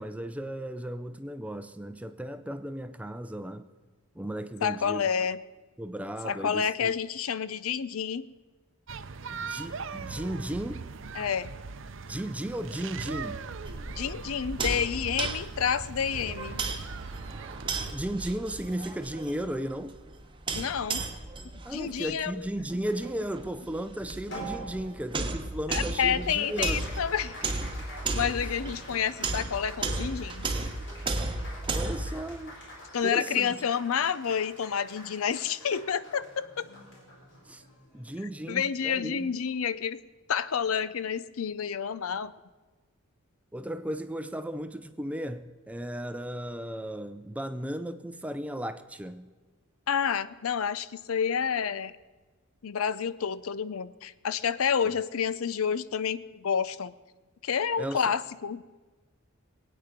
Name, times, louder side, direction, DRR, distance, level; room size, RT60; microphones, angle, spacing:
voice 1, 0.0-3.7 4.2-5.1 5.8-6.9 9.3-10.8 12.0-13.4 17.9-20.0 21.6-26.8 31.7-32.5 33.0-33.6 37.5-37.6 37.9-39.3 43.5-49.3 54.8-54.9 57.8-58.0, right 1 dB, 5° right, 0.5 m, -35 dB
voice 2, 4.6-5.4 6.2-8.3 11.1-11.5 13.9-16.6 20.5-21.0 21.7-22.5 25.7-27.4 28.1-30.5 32.9-36.5 38.5-40.0 40.3-42.3 49.9-51.9 52.6-56.9 57.4-58.6, left 7 dB, 80° left, 0.5 m, -29 dB
sound 1, 8.9-17.9, right 5 dB, 60° right, 0.6 m, -40 dB
sound 2, 13.7-32.1, right 3 dB, 25° right, 0.9 m, -35 dB
Applause, 24.3-38.9, equal, 60° left, 3.7 m, -46 dB
22.5 x 8.8 x 5.1 m
head